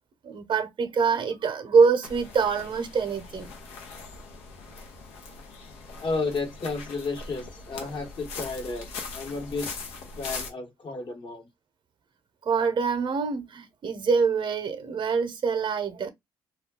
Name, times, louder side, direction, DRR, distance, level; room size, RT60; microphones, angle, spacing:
voice 1, 0.2-3.5 12.4-16.1, right 5 dB, 50° right, 0.7 m, -25 dB
sound 1, 2.0-10.5, left 4 dB, 85° left, 0.7 m, -41 dB
voice 2, 5.9-9.7 10.2-11.5, left 3 dB, 50° left, 1.2 m, -32 dB
2.3 x 2.2 x 3.6 m
supercardioid pair, 60°, 10 cm